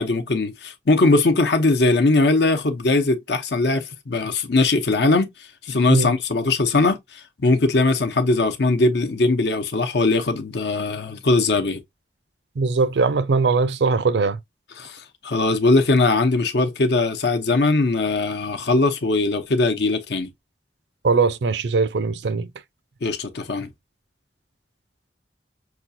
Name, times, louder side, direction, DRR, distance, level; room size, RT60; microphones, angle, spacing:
voice 1, 0.0-5.3 5.6-11.8 14.8-20.3 23.0-23.7, left 3 dB, 70° left, 0.8 m, -20 dB
voice 2, 12.6-14.4 21.0-22.5, right 4 dB, 75° right, 0.5 m, -20 dB
5.9 x 2.4 x 2.6 m
head